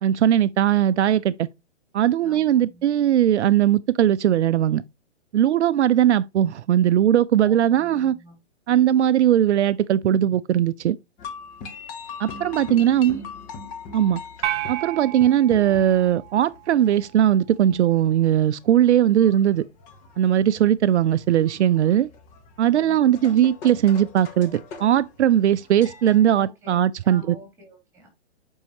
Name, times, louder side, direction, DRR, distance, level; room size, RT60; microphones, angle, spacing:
voice 1, 0.0-1.5 1.9-4.8 5.3-8.1 8.7-11.0 12.2-13.2 13.9-14.2 14.7-19.6 20.2-22.1 22.6-27.4, right 11 dB, 75° right, 0.5 m, -19 dB
voice 2, 2.2-2.9 7.4-8.4 12.7-13.2 22.7-23.4 26.3-28.1, equal, 10° right, 3.9 m, -47 dB
sound 1, 11.2-26.2, left 4 dB, 20° left, 0.9 m, -41 dB
sound 2, 14.4-16.9, right 13 dB, 25° right, 0.6 m, -32 dB
6.8 x 5.4 x 3.0 m
hypercardioid pair, 140°, 34 cm